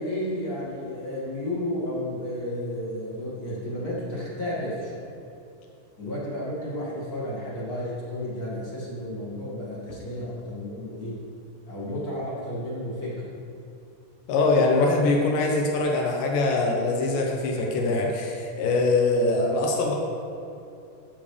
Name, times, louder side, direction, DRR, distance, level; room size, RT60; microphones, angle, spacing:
voice 1, 0.0-5.1 6.0-11.1 11.7-13.3, left 1 dB, 30° left, -7 dB, 2.2 m, -32 dB
voice 2, 14.3-19.9, left 3 dB, 85° left, 0 dB, 2.7 m, -23 dB
12.0 x 7.4 x 3.4 m, 2.6 s
omnidirectional pair, 3.8 m